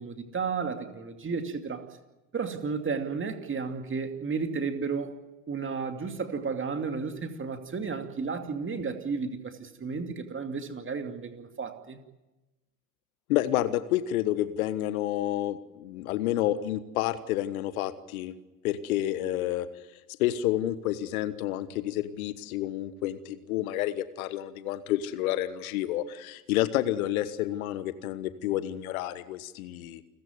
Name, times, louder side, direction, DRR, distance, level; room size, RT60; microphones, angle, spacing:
voice 1, 0.0-1.9 2.3-5.1 5.5-12.0, right 5 dB, 25° right, 6 dB, 2.5 m, -33 dB
voice 2, 13.3-18.3 18.6-19.7 20.2-30.0, left 13 dB, 70° left, 14 dB, 1.3 m, -29 dB
29.0 x 14.5 x 9.5 m, 1.1 s
figure-of-eight pair, 65°, 44 cm